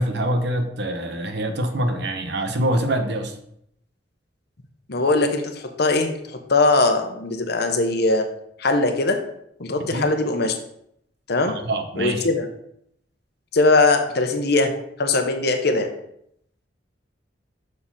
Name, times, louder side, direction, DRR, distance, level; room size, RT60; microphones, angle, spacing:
voice 1, 0.0-3.4 9.8-10.1 11.5-12.3, right 1 dB, 65° right, 7 dB, 1.0 m, -25 dB
voice 2, 4.9-8.2 8.6-9.2 9.6-10.5 11.3-11.5 12.0-12.5 13.5-14.7 15.0-15.9, left 3 dB, 60° left, 5 dB, 1.0 m, -20 dB
6.6 x 4.7 x 5.5 m, 0.73 s
head